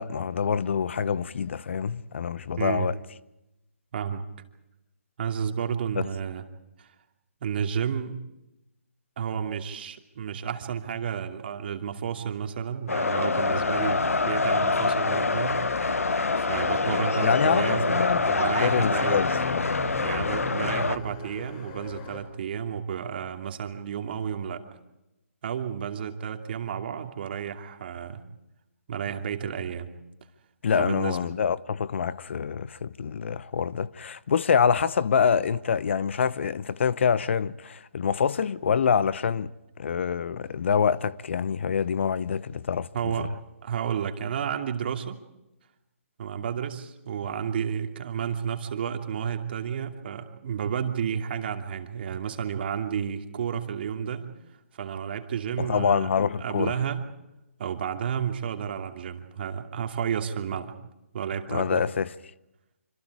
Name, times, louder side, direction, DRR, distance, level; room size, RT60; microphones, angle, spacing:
voice 1, 0.0-3.0 6.0-6.1 16.9-19.8 30.6-39.5 39.8-43.3 55.6-56.7 61.5-62.1, left 6 dB, 55° left, 0.9 m, -26 dB
voice 2, 2.6-2.9 3.9-4.2 5.2-6.4 6.8-6.9 7.4-8.2 9.2-15.6 16.3-19.2 20.0-24.6 25.4-28.2 28.9-29.9 30.8-31.2 42.9-43.3 43.6-45.2 46.2-54.3 54.8-56.1 56.4-57.0 57.6-60.7 61.1-61.8, right 8 dB, 45° right, 2.8 m, -31 dB
sound 1, 12.9-21.0, left 3 dB, 80° left, 1.2 m, -25 dB
sound 2, 13.4-22.2, left 4 dB, 30° left, 6.0 m, -40 dB
26.5 x 26.5 x 4.9 m
figure-of-eight pair, 145°, 8 cm